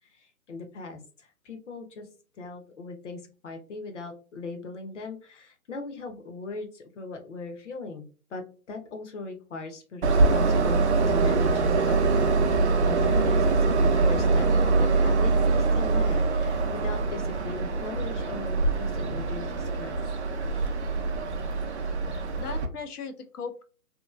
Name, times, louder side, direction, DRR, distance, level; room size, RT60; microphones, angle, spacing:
voice 1, 0.2-2.1 2.4-8.0 8.3-14.5 14.8-20.0, left 3 dB, 50° left, 5 dB, 0.8 m, -39 dB
Train, 10.0-22.7, right 3 dB, 50° right, 0.5 m, -24 dB
voice 2, 21.9-23.6, left 5 dB, 80° left, 7 dB, 0.7 m, -38 dB
3.0 x 2.3 x 2.3 m, 0.36 s
hypercardioid pair, 155°, 45 cm